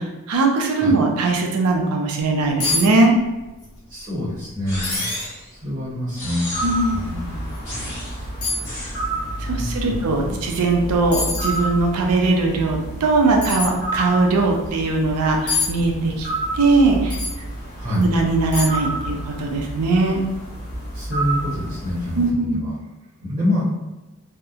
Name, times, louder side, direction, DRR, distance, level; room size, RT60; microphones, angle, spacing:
voice 1, 0.0-3.1 6.6-7.0 9.4-16.3 16.5-17.2 17.9-20.2 22.2-22.6, right 3 dB, 90° right, 1 dB, 0.5 m, -20 dB
Metal bottle opener dropping on slate stone - outdoor ambi, 2.6-2.9 3.2-3.7 4.1-4.2 4.8-5.3 5.9-6.0 7.5-7.6 8.4-8.7 10.6-10.7 11.1-11.6 13.4-13.7 15.5-15.7 17.1-17.4 17.9-18.0 18.5-18.9 19.2-19.3, left 3 dB, 75° left, 0.8 m, -25 dB
voice 2, 3.9-5.0 5.5-6.6 6.9-7.3 9.5-10.0 10.3-10.4 17.8-18.0 20.9-22.7 23.2-23.7, left 1 dB, 25° right, -10 dB, 0.7 m, -26 dB
sound 1, 4.7-5.5 6.1-6.9 7.6-8.2 8.6-9.0, left 1 dB, 15° left, 0.8 m, -32 dB
sound 2, 6.5-22.3, right 1 dB, 45° left, 0.7 m, -30 dB
2.7 x 2.0 x 2.3 m, 1.1 s
head